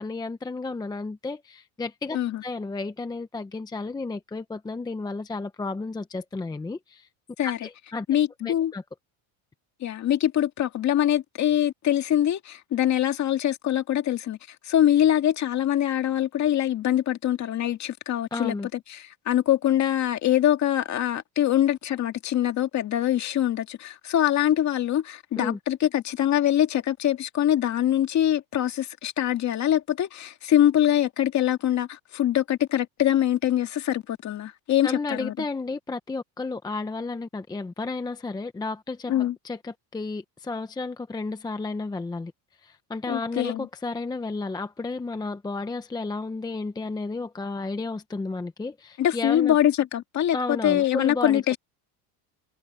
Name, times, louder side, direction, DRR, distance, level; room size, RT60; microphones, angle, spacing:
voice 1, 0.0-7.1 7.4-8.1 8.4-8.8 18.3-18.7 25.4-25.6 34.8-39.1 39.4-42.3 42.6-49.6 50.3-51.4, left 3 dB, 10° left, 0.7 m, -32 dB
voice 2, 8.1-8.7 9.8-14.4 14.7-18.5 18.9-35.3 39.1-39.4 43.1-43.7 49.0-51.6, left 11 dB, 40° left, 2.0 m, -24 dB
cardioid pair, 150°, 44 cm